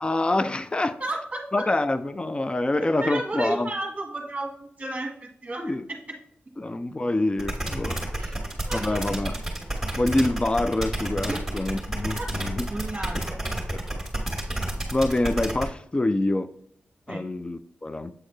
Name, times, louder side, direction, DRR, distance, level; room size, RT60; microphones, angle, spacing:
voice 1, 0.0-1.0 1.5-3.7 5.6-5.9 6.6-8.3 8.7-9.4 10.0-12.7 13.7-14.0 14.9-16.5 17.1-18.1, left 2 dB, 25° left, 0.5 m, -26 dB
voice 2, 1.0-1.7 2.8-5.7 8.2-8.3 8.7-9.0 11.3-11.4 12.2-12.3 12.7-13.4 17.1-17.3, right 2 dB, 25° right, 1.4 m, -33 dB
sound 1, 7.4-15.6, right 1 dB, 5° right, 2.1 m, -30 dB
7.8 x 4.2 x 3.2 m
cardioid pair, 60°, 4 cm